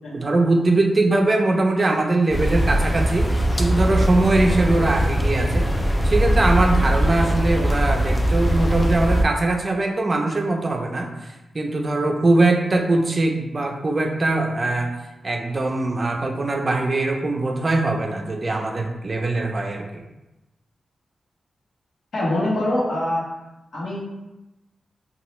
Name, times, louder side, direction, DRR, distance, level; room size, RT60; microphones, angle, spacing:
voice 1, 0.1-3.3 3.6-5.7 6.0-14.9 15.2-20.0, right 2 dB, 40° right, 3 dB, 0.4 m, -21 dB
sound 1, 2.3-9.2, equal, 15° left, 0.4 m, -21 dB
voice 2, 22.1-23.2 23.7-24.0, left 1 dB, 90° left, -6 dB, 1.0 m, -23 dB
2.8 x 2.4 x 3.1 m, 1.0 s
cardioid pair, 75°, 0 cm